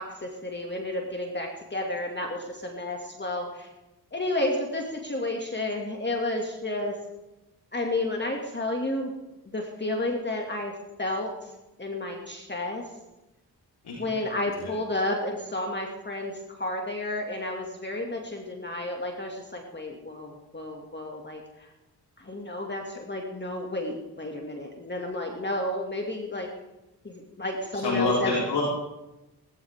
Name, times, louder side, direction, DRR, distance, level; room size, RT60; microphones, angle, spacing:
voice 1, 0.0-3.7 4.1-7.0 7.7-9.1 9.5-10.7 11.0-11.3 11.8-12.9 14.0-21.4 22.2-26.5 27.0-28.3, left 1 dB, 25° left, 1 dB, 2.4 m, -31 dB
voice 2, 27.7-28.6, left 3 dB, 75° left, -5 dB, 4.3 m, -27 dB
19.0 x 12.5 x 3.7 m, 0.99 s
cardioid pair, 60°, 39 cm